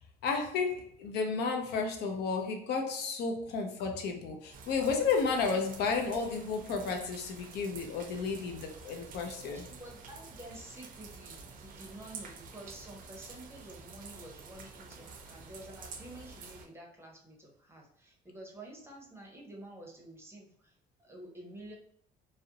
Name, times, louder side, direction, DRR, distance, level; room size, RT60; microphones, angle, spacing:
voice 1, 0.2-9.7, left 4 dB, 75° left, 3 dB, 0.6 m, -32 dB
sound 1, 4.5-16.7, right 4 dB, 55° right, 0.5 m, -49 dB
voice 2, 9.5-21.7, right 1 dB, 15° right, -1 dB, 0.6 m, -50 dB
2.4 x 2.0 x 2.7 m, 0.64 s
cardioid pair, 110°, 17 cm